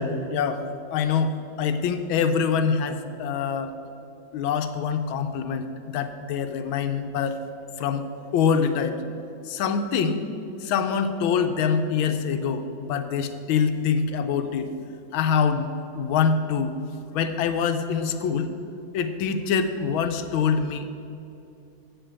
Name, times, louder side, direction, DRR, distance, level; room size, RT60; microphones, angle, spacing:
voice 1, 0.9-1.3 1.6-3.7 4.3-7.4 7.8-8.0 8.3-9.0 9.5-10.2 10.6-14.7 15.1-15.7 16.0-16.7 17.1-18.5 18.9-20.8, left 6 dB, 75° left, 8 dB, 1.5 m, -24 dB
8.0 x 7.1 x 8.0 m, 2.7 s
omnidirectional pair, 2.3 m